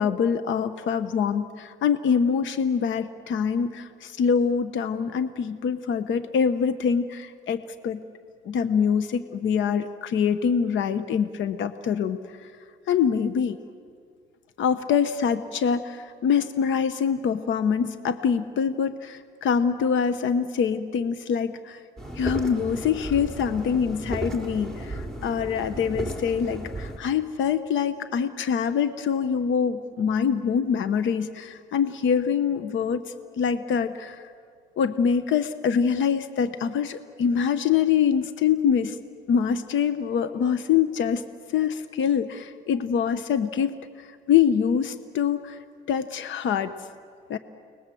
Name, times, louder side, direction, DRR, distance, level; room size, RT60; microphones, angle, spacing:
voice 1, 0.0-8.0 8.4-12.5 12.9-13.6 14.6-21.8 22.1-33.0 33.4-34.2 34.8-39.0 39.3-41.2 41.5-45.6 45.9-46.7 47.3-47.4, left 7 dB, 75° left, 11 dB, 1.0 m, -24 dB
sound 1, 22.0-27.0, right 1 dB, 5° left, 3.5 m, -34 dB
30.0 x 20.0 x 7.7 m, 2.1 s
cardioid pair, 90°, 20 cm